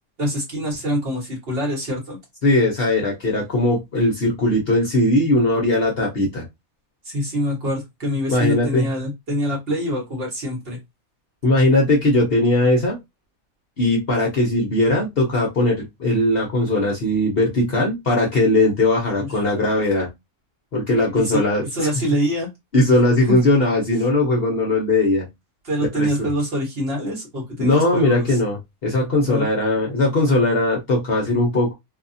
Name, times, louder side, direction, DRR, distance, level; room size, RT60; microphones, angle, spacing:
voice 1, 0.2-2.2 7.0-10.8 19.2-19.3 21.1-21.4 21.7-22.5 23.3-23.4 25.6-28.4 29.2-29.5, equal, 45° right, 1.2 m, -25 dB
voice 2, 2.4-6.5 8.3-8.9 11.4-13.0 13.8-20.1 20.7-21.9 22.7-25.3 25.9-26.3 27.6-31.7, left 2 dB, 50° left, 0.8 m, -19 dB
2.7 x 2.3 x 2.6 m
omnidirectional pair, 1.5 m